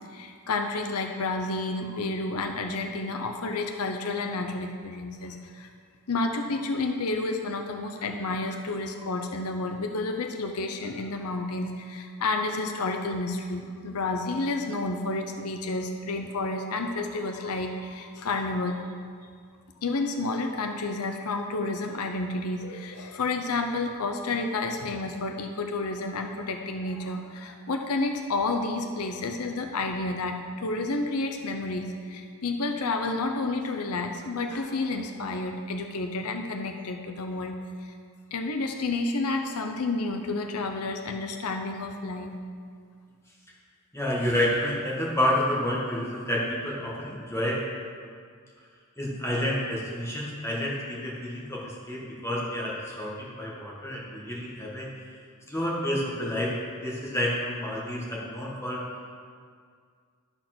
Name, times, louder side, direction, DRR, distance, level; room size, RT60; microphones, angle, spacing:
voice 1, 0.1-5.7 6.1-18.8 19.8-37.6 37.8-37.9 38.3-42.4, left 3 dB, 80° left, 4 dB, 0.7 m, -30 dB
voice 2, 43.9-47.6 49.0-54.9 55.5-56.5 56.8-58.9, left 1 dB, 10° left, -5 dB, 1.6 m, -29 dB
11.5 x 4.5 x 6.0 m, 2.1 s
head